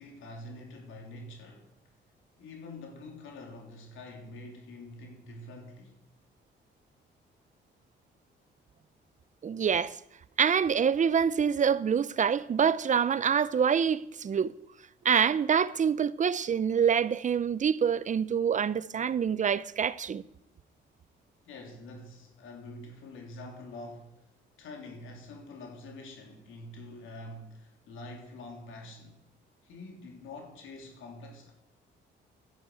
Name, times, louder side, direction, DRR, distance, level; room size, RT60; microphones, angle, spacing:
voice 1, 0.0-1.7 2.4-5.9 21.4-24.2 24.6-29.2 29.6-31.5, left 2 dB, 80° left, 3.3 m, -46 dB
voice 2, 9.4-10.0 10.4-14.5 15.0-20.2, right 7 dB, 40° right, 0.6 m, -26 dB
12.0 x 10.5 x 7.9 m
cardioid pair, 90°, 20 cm